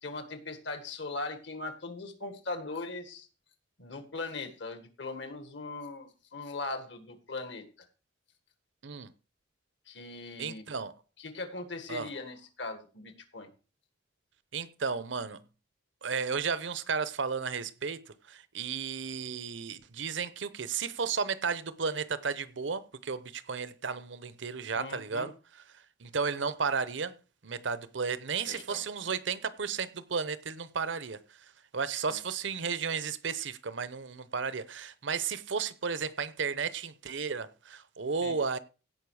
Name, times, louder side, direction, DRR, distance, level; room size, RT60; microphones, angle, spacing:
voice 1, 0.0-3.3 3.8-7.7 9.9-10.7 11.2-13.5 24.7-25.3 28.5-28.8 32.1-32.2 38.2-38.3, left 3 dB, 65° left, 1.8 m, -39 dB
voice 2, 10.4-10.9 11.9-12.1 14.5-15.4 16.0-18.0 18.3-25.3 26.0-27.1 27.4-31.2 31.7-38.6, right 5 dB, 70° right, 0.8 m, -33 dB
16.5 x 5.5 x 4.8 m
head